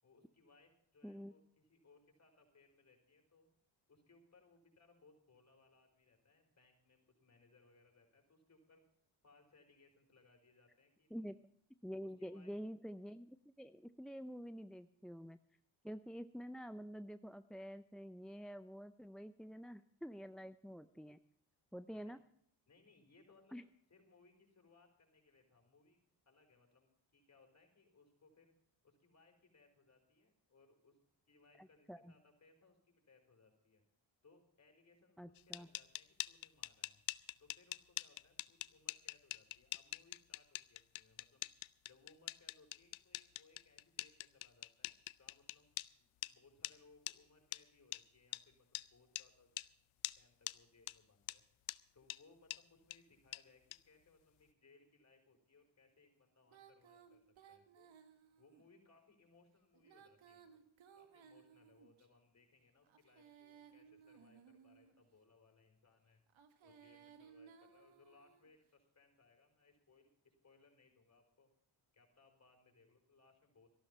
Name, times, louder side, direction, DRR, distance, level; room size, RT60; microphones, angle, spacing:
voice 1, 0.0-3.5 3.9-8.8 9.2-11.3 12.0-12.5 21.9-22.1 22.7-23.6 23.9-26.0 26.2-28.5 28.8-31.0 31.3-33.8 34.2-37.0 37.4-41.5 41.9-49.5 50.1-51.4 51.9-57.9 58.4-60.7 60.9-66.2 66.6-71.5 71.9-73.8, left 3 dB, 35° left, 3 dB, 4.9 m, -68 dB
voice 2, 1.0-1.3 11.1-11.3 11.8-15.4 15.8-21.2 21.7-22.2 23.5-23.6 31.6-32.1 35.2-35.7, equal, ahead, 11 dB, 0.5 m, -48 dB
sound 1, 35.3-45.9 46.2-46.3 46.6-46.7 47.1-47.2 47.5-47.6 47.9-48.0 48.3-48.4 48.7-48.9 49.1-49.3 49.6-49.7 50.0-50.2 50.5-50.6 50.9-51.0 51.3-51.4 51.7-51.8 52.1-52.2 52.5-52.6 52.9-53.0 53.3-53.4 53.7-53.8, left 18 dB, 80° left, 0.6 m, -43 dB
Female singing, 56.5-58.6 59.7-62.1 62.8-65.0 66.3-68.5, right 7 dB, 75° right, 1.8 m, -62 dB
14.0 x 12.0 x 5.5 m, 0.66 s
cardioid pair, 75°, 47 cm